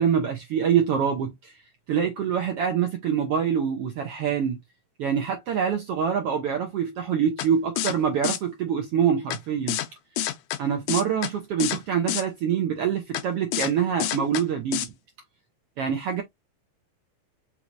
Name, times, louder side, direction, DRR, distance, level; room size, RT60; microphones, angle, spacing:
voice 1, 0.0-1.6 1.9-4.6 5.0-9.8 10.6-14.9 15.8-16.2, right 8 dB, 80° right, 1.3 m, -25 dB
sound 1, 7.4-7.5 7.8-7.9 8.2-8.4 9.3-9.4 9.7-9.9 10.2-10.6 10.9-11.3 11.6-11.8 12.1-12.2 13.1-13.2 13.5-13.7 14.0-14.4 14.7-14.9, left 13 dB, 80° left, 2.1 m, -27 dB
5.7 x 3.0 x 2.6 m
omnidirectional pair, 3.8 m